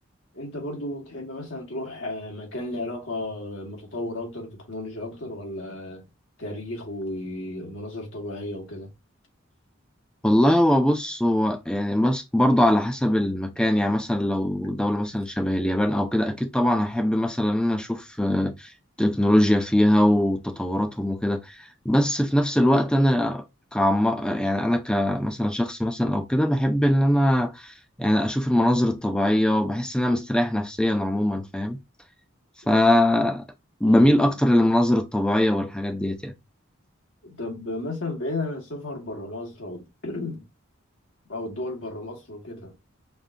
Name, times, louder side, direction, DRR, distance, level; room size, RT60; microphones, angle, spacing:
voice 1, 0.3-6.0 6.4-8.9 33.8-34.4 37.2-40.4 41.3-42.7, left 2 dB, 80° left, 1.7 m, -34 dB
voice 2, 10.2-18.7 19.0-21.4 21.8-23.4 23.7-31.8 32.7-33.4 33.8-36.3, left 1 dB, 5° left, 0.5 m, -22 dB
5.2 x 2.6 x 2.5 m
head